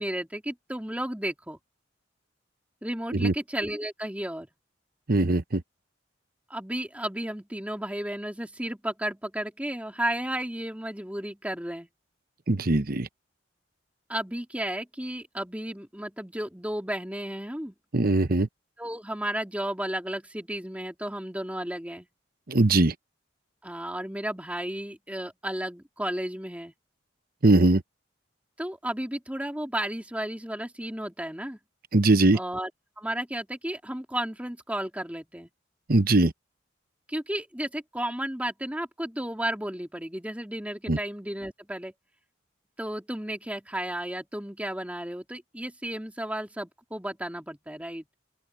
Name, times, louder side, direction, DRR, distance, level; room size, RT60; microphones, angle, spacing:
voice 1, 0.0-1.6 2.8-4.5 6.5-11.9 14.1-17.7 18.8-22.1 23.6-26.7 28.6-31.6 32.3-32.7 33.0-35.5 37.1-41.9 42.8-48.0, right 1 dB, 5° right, 3.2 m, -33 dB
voice 2, 5.1-5.6 12.5-13.1 17.9-18.5 22.5-22.9 27.4-27.8 31.9-32.4 35.9-36.3 40.9-41.0, right 2 dB, 50° right, 0.9 m, -21 dB
open air
head